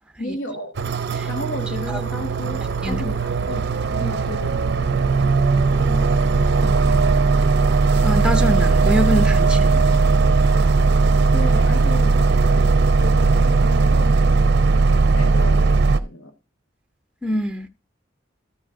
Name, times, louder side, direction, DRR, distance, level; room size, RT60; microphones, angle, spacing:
voice 1, 0.2-0.7 1.3-4.8 5.9-7.1 11.3-14.6 14.9-16.3, left 1 dB, 90° left, 1.3 m, -34 dB
sound 1, 0.8-16.0, right 4 dB, 60° right, 0.5 m, -18 dB
voice 2, 8.0-10.0 17.2-17.7, equal, 5° right, 0.7 m, -24 dB
13.5 x 5.0 x 3.6 m
head